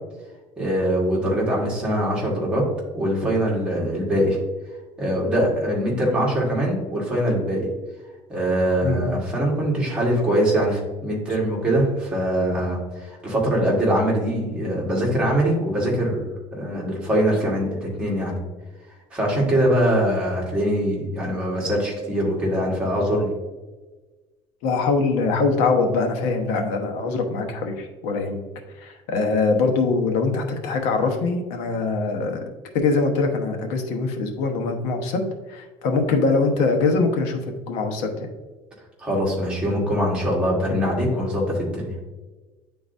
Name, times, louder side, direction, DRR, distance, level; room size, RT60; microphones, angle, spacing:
voice 1, 0.6-2.6 2.9-4.4 5.0-7.7 8.3-18.4 19.1-23.3 39.0-41.9, equal, 10° right, -4 dB, 1.5 m, -23 dB
voice 2, 24.6-28.4 28.8-32.4 32.7-35.2 35.5-37.4 37.7-38.1, left 3 dB, 85° left, 4 dB, 1.0 m, -23 dB
9.5 x 3.9 x 2.6 m, 1.2 s
cardioid pair, 180°, 11 cm